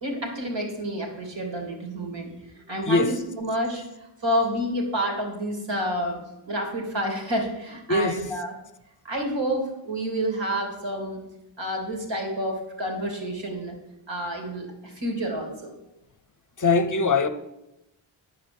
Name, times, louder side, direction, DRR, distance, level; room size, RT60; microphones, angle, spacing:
voice 1, 0.0-2.3 2.6-6.2 6.5-8.5 9.0-11.2 11.6-13.8 14.1-15.7, equal, 60° right, 2 dB, 3.1 m, -29 dB
voice 2, 16.6-17.3, left 3 dB, 40° left, 11 dB, 0.7 m, -21 dB
10.0 x 5.0 x 8.1 m, 0.89 s
cardioid pair, 80°, 49 cm